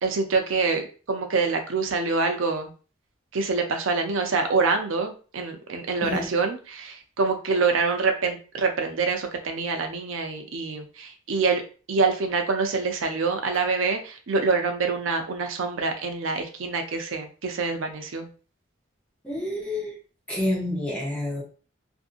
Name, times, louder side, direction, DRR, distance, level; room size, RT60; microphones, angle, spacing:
voice 1, 0.0-2.7 3.3-11.6 11.9-18.3, right 4 dB, 80° right, 5 dB, 0.5 m, -26 dB
voice 2, 6.0-6.3 19.2-19.9 20.3-21.4, left 1 dB, 5° left, -3 dB, 0.8 m, -28 dB
2.6 x 2.6 x 2.5 m, 0.37 s
head